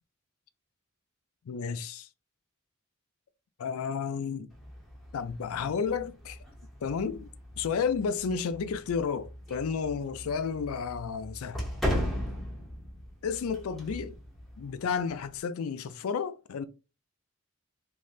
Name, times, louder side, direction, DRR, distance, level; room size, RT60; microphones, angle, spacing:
voice 1, 1.5-2.1 3.6-4.5 5.1-6.4 6.8-7.3 7.6-11.6 13.2-14.1 14.6-16.6, left 6 dB, 85° left, 0.4 m, -32 dB
sound 1, 4.5-15.4, equal, ahead, 0.7 m, -38 dB
3.2 x 2.7 x 2.3 m
head